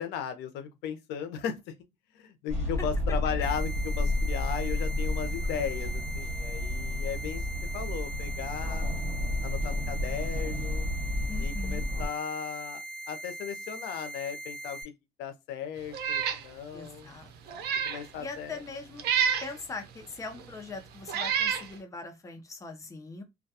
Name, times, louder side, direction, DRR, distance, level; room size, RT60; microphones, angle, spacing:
voice 1, 0.0-1.7 2.1-7.4 7.7-8.9 9.4-10.9 11.4-14.8 15.2-17.1 17.8-18.6, left 8 dB, 90° left, 0.5 m, -36 dB
sound 1, 2.5-12.1, left 1 dB, 40° right, 1.2 m, -31 dB
sound 2, 3.4-14.8, right 1 dB, 55° left, 1.0 m, -41 dB
voice 2, 11.3-11.9 16.7-17.7 18.2-19.0 19.4-23.2, left 3 dB, 20° left, 0.6 m, -41 dB
Meow, 15.9-16.4 16.9-17.0 17.5-18.0 19.0-19.5 20.4-20.5 21.1-21.7, right 7 dB, 70° right, 0.4 m, -28 dB
2.2 x 2.2 x 2.7 m
cardioid pair, 110°, 17 cm